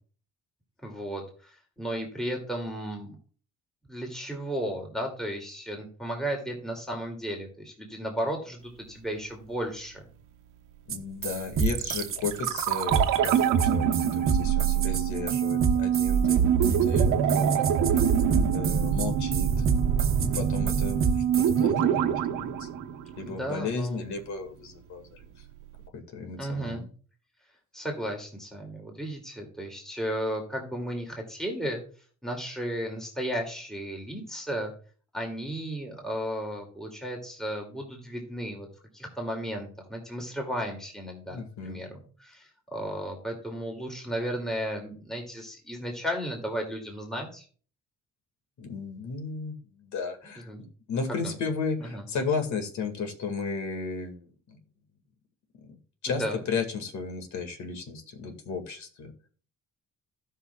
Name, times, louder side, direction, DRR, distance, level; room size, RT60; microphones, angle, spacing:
voice 1, 0.8-3.2 3.9-10.1 23.3-24.1 26.4-26.8 27.7-31.8 32.2-34.7 35.1-38.7 38.9-47.4 50.5-50.6 51.2-51.3 51.9-52.0 56.1-56.4, equal, ahead, 1 dB, 2.4 m, -34 dB
voice 2, 10.9-17.9 18.5-19.5 19.9-22.7 23.2-25.5 25.9-26.9 41.3-41.8 48.6-54.6 55.6-55.8 56.0-59.1, left 5 dB, 70° left, 5 dB, 2.1 m, -34 dB
sound 1, 10.9-11.0 11.2-21.5, right 5 dB, 45° right, 1.0 m, -29 dB
sound 2, 11.6-23.6 23.8-23.9, right 8 dB, 85° right, 1.0 m, -25 dB
16.0 x 5.6 x 2.3 m, 0.41 s
cardioid pair, 90°, 30 cm